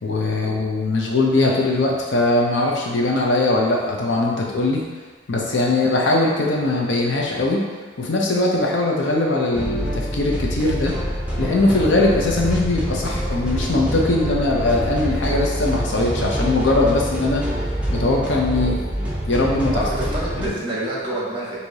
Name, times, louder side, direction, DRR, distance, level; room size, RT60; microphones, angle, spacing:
voice 1, 0.0-4.8 5.3-7.6 8.0-10.9 11.4-17.5 17.9-18.8 19.3-19.8 20.4-20.5, left 2 dB, 70° left, -1 dB, 0.7 m, -20 dB
sound 1, 9.5-20.5, equal, 5° right, 0.6 m, -25 dB
voice 2, 19.7-21.6, right 1 dB, 25° right, -6 dB, 1.1 m, -27 dB
4.7 x 2.8 x 2.7 m, 1.4 s
head